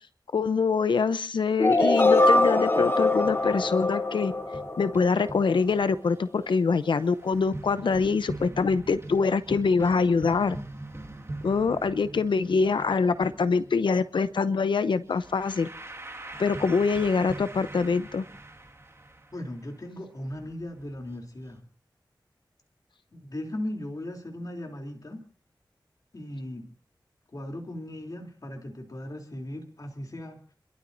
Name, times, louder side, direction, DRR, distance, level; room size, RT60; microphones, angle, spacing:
voice 1, 0.3-4.3 4.8-10.6 11.4-15.7 16.4-18.2, left 5 dB, 90° left, 13 dB, 0.8 m, -24 dB
sound 1, 1.6-5.5, left 2 dB, 30° left, 1.1 m, -23 dB
sound 2, 3.2-21.2 21.5-21.6, right 2 dB, 30° right, 2.1 m, -43 dB
voice 2, 19.3-21.6 23.1-25.2 26.1-26.7 27.3-30.4, left 1 dB, 50° left, 1 dB, 3.3 m, -37 dB
30.0 x 12.5 x 2.7 m, 0.43 s
cardioid pair, 50°, 8 cm